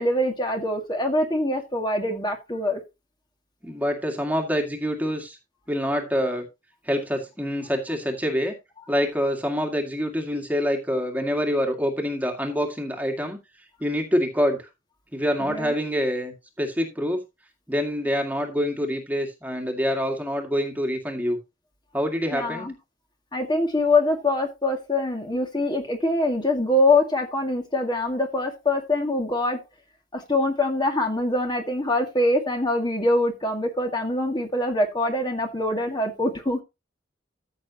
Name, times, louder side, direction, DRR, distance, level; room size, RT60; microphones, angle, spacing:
voice 1, 0.0-2.8 15.4-15.7 22.3-22.7 23.3-29.6 30.1-36.6, left 2 dB, 25° left, 3 dB, 2.0 m, -24 dB
voice 2, 3.6-5.4 5.7-6.5 6.9-8.6 8.9-13.4 13.8-14.7 15.1-17.2 17.7-21.4 21.9-22.7, equal, 10° right, 3 dB, 2.1 m, -26 dB
14.5 x 6.7 x 2.9 m, 0.24 s
head